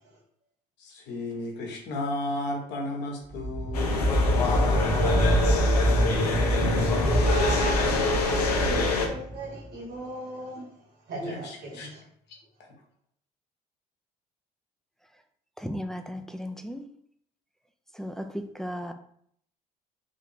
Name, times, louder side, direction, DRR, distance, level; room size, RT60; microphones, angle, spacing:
voice 1, 0.8-5.4 11.2-11.9 12.6-12.7, left 2 dB, 60° left, 1.2 m, -35 dB
sound 1, 3.3-9.7, right 1 dB, 25° right, 1.3 m, -25 dB
sound 2, 3.7-9.1, left 4 dB, 90° left, 0.6 m, -26 dB
voice 2, 6.0-10.6 11.1-12.0, right 2 dB, 55° right, 1.7 m, -37 dB
voice 3, 15.6-16.9 17.9-18.9, equal, ahead, 0.5 m, -35 dB
3.5 x 2.7 x 4.1 m
hypercardioid pair, 55°, 20 cm